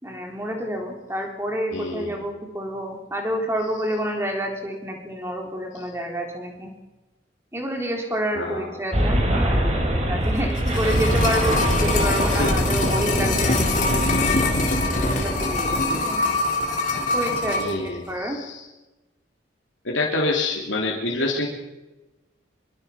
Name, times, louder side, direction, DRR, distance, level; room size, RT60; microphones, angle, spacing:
voice 1, 0.0-6.7 7.5-13.9 15.0-16.2 17.1-18.4, equal, 15° right, 1 dB, 3.9 m, -29 dB
voice 2, 1.7-2.2 8.3-8.7 12.3-12.5 17.6-18.6 19.8-21.5, left 2 dB, 80° left, -3 dB, 3.2 m, -27 dB
sound 1, 8.9-15.8, equal, 35° right, 4.0 m, -24 dB
sound 2, 10.3-17.8 18.0-18.1, left 2 dB, 40° left, 3.4 m, -24 dB
25.5 x 22.5 x 5.9 m, 1.1 s
head